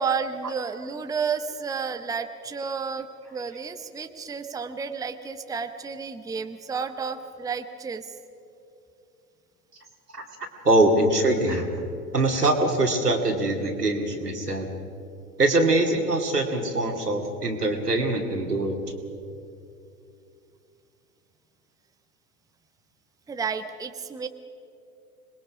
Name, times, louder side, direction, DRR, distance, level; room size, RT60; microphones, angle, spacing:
voice 1, 0.0-3.1 3.3-8.1 23.3-24.3, right 6 dB, 10° right, 8 dB, 0.9 m, -31 dB
voice 2, 10.6-11.7 12.1-14.7 15.4-18.8, right 2 dB, 90° right, 2 dB, 2.6 m, -23 dB
26.5 x 21.0 x 5.0 m, 2.6 s
figure-of-eight pair, 90°, 46 cm